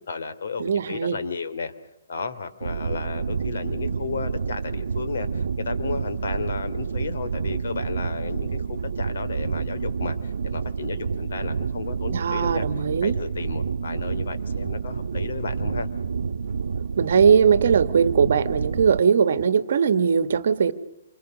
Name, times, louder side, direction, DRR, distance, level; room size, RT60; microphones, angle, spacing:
voice 1, 0.1-1.7 2.1-12.7 13.0-15.9, left 5 dB, 65° left, 10 dB, 3.0 m, -33 dB
voice 2, 0.6-1.2 12.1-13.2 17.0-20.7, right 6 dB, 55° right, 12 dB, 1.7 m, -20 dB
sound 1, 2.6-19.0, right 5 dB, 75° right, 1.1 m, -29 dB
28.0 x 26.0 x 6.5 m, 0.84 s
hypercardioid pair, 170°, 0 cm